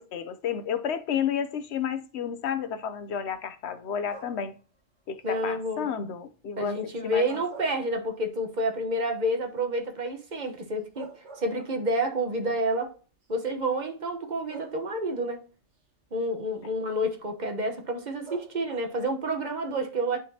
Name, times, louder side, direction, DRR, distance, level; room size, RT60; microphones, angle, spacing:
voice 1, 0.0-4.5 5.1-6.8 7.0-7.3, left 8 dB, 70° left, 0.9 m, -31 dB
sound 1, 4.1-4.6 7.0-8.4 8.8-8.9 10.5-10.6 10.9-12.1 13.1-13.2 14.5-15.2 18.2-19.1, right 3 dB, 75° right, 1.5 m, -46 dB
voice 2, 5.2-5.9 6.6-12.9 13.3-15.4 16.1-20.2, right 1 dB, 40° right, 1.1 m, -29 dB
11.0 x 3.9 x 2.8 m
omnidirectional pair, 1.2 m